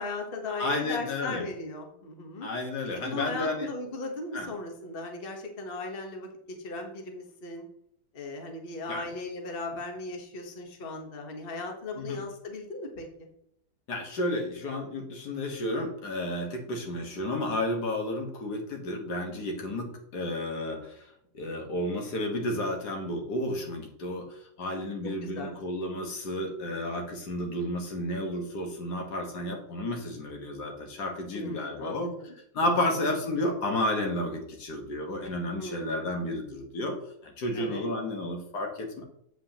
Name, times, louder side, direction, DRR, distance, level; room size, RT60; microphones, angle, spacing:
voice 1, 0.0-2.5 2.9-7.7 8.1-13.3 19.7-19.8 25.2-25.5 31.3-32.3 32.8-32.9 35.6-36.0 37.5-37.9, left 3 dB, 35° left, 2 dB, 1.3 m, -37 dB
voice 2, 0.6-1.4 2.4-3.7 4.3-4.5 8.9-9.1 11.9-12.2 13.9-21.0 21.3-24.3 24.6-32.1 32.5-37.0 37.2-39.0, left 1 dB, 80° left, 2 dB, 2.0 m, -32 dB
8.3 x 7.8 x 2.9 m, 0.72 s
omnidirectional pair, 1.7 m